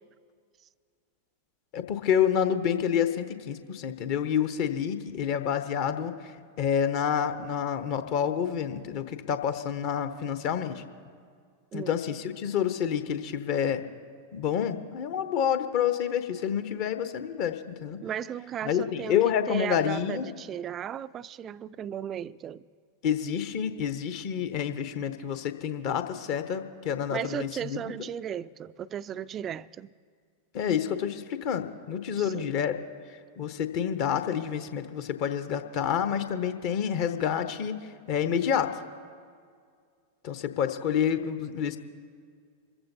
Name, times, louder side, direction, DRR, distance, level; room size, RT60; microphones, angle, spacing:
voice 1, 1.7-6.1 6.6-10.8 11.7-13.8 14.3-18.0 18.6-20.3 23.0-27.8 30.5-32.8 33.4-37.8 38.1-38.7 40.2-41.8, left 8 dB, 45° left, 0.9 m, -28 dB
voice 2, 18.0-22.7 27.1-29.9 32.2-32.6, right 9 dB, 30° right, 0.4 m, -36 dB
26.5 x 15.0 x 2.8 m
figure-of-eight pair, 90°, 0 cm